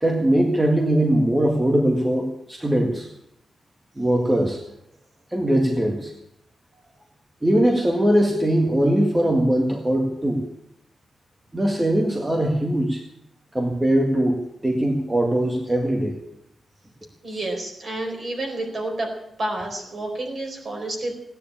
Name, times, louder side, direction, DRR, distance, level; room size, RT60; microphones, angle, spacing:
voice 1, 0.0-3.1 4.0-4.6 5.3-6.1 7.4-10.4 11.5-13.0 13.5-16.2, right 1 dB, 15° right, 1 dB, 1.9 m, -21 dB
voice 2, 17.2-19.1 19.4-21.1, right 2 dB, 45° right, 2 dB, 4.2 m, -29 dB
17.0 x 9.8 x 8.7 m, 0.81 s
wide cardioid pair, 155°, 0 cm